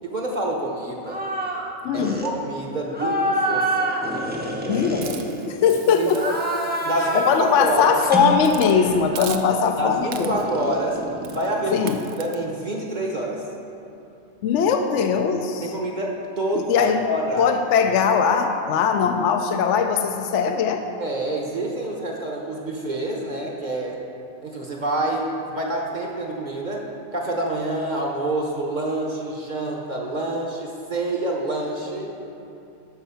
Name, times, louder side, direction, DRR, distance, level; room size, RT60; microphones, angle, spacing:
voice 1, 0.0-1.3 1.9-4.0 5.9-6.2 6.8-7.9 9.1-11.0 11.3-11.9 12.2-13.4 15.6-17.5 21.0-24.0 24.4-26.8 27.1-32.1, right 1 dB, 35° right, -1 dB, 0.9 m, -27 dB
sound 1, 1.0-1.7 1.9-2.3 2.9-5.7 6.1-7.5 8.0-9.1 10.1-11.9, right 1 dB, 10° right, 0.6 m, -27 dB
voice 2, 1.8-2.2 4.7-6.4 7.1-10.4 11.7-12.0 14.4-15.7 16.5-17.1 17.4-20.8, left 6 dB, 65° left, 5 dB, 0.8 m, -20 dB
Hiss, 5.0-7.9 8.4-8.8 9.2-9.8 10.1-10.6 11.2-11.5 11.9-12.4, right 10 dB, 75° right, 1.0 m, -39 dB
11.5 x 4.5 x 5.7 m, 2.7 s
omnidirectional pair, 1.6 m